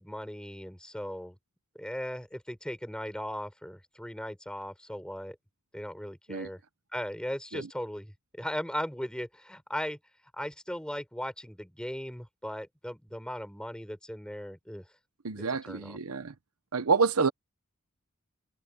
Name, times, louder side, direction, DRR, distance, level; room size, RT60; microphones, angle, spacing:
voice 1, 0.0-1.4 1.8-5.4 5.7-6.6 6.9-10.0 10.4-14.8 15.7-16.0, equal, 5° left, 3.7 m, -38 dB
voice 2, 15.2-16.3 16.7-17.3, right 4 dB, 80° right, 0.9 m, -28 dB
head